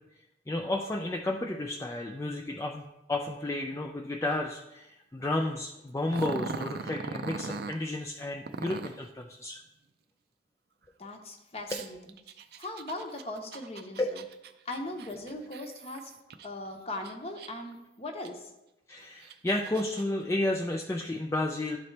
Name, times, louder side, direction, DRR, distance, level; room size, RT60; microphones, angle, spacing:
voice 1, 0.5-9.6 11.7-11.8 14.0-14.2 18.9-21.8, left 1 dB, 15° left, 1 dB, 0.3 m, -32 dB
Growling, 6.1-7.8 8.5-9.1 11.7-16.5 16.9-17.7 18.2-18.3 19.0-20.0, right 4 dB, 60° right, 0.4 m, -40 dB
voice 2, 11.0-12.0 12.6-14.2 14.6-16.1 16.4-18.5, left 1 dB, 35° left, 3 dB, 0.8 m, -39 dB
12.0 x 4.1 x 3.3 m, 0.93 s
head